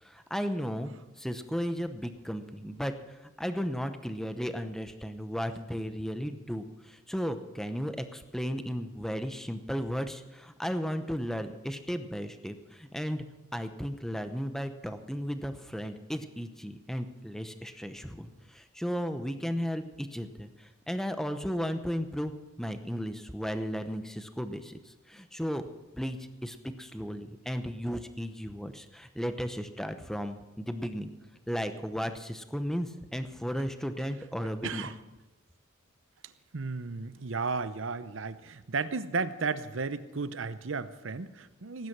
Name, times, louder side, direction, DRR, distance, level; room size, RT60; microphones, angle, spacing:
voice 1, 0.1-0.9 1.2-2.9 3.4-13.2 13.5-18.3 18.5-20.5 20.9-24.8 25.1-25.6 25.9-31.1 31.5-34.9, equal, ahead, 8 dB, 0.9 m, -34 dB
voice 2, 34.4-35.0 36.5-41.9, right 4 dB, 65° right, 13 dB, 0.8 m, -34 dB
18.0 x 9.6 x 6.1 m, 1.1 s
head